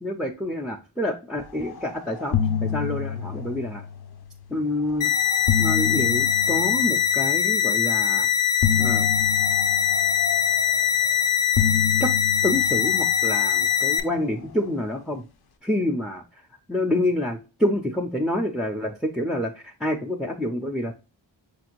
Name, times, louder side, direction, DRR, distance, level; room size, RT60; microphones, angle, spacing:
voice 1, 0.0-3.8 4.5-5.1 5.6-8.3 8.8-9.1 12.0-12.1 12.4-15.3 15.6-16.2 16.7-20.9, left 1 dB, ahead, 2 dB, 0.3 m, -27 dB
sound 1, 1.7-1.9 2.2-4.5 5.2-7.6 8.6-11.1 11.6-14.1, left 7 dB, 55° left, 0.5 m, -28 dB
sound 2, 5.0-14.0, left 9 dB, 90° left, 0.7 m, -22 dB
5.6 x 2.6 x 2.9 m, 0.31 s
wide cardioid pair, 130°, 46 cm